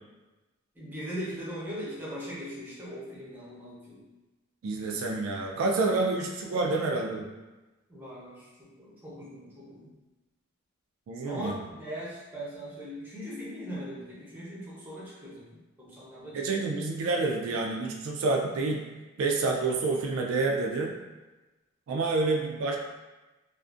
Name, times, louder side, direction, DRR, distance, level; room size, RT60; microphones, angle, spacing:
voice 1, 0.7-4.0 6.8-7.0 7.9-9.9 11.2-16.7, equal, 10° right, -7 dB, 0.6 m, -40 dB
voice 2, 4.6-7.3 11.1-11.5 16.3-18.8 19.2-20.9 21.9-22.8, right 3 dB, 70° right, 0 dB, 0.3 m, -28 dB
2.4 x 2.4 x 2.4 m, 1.1 s
head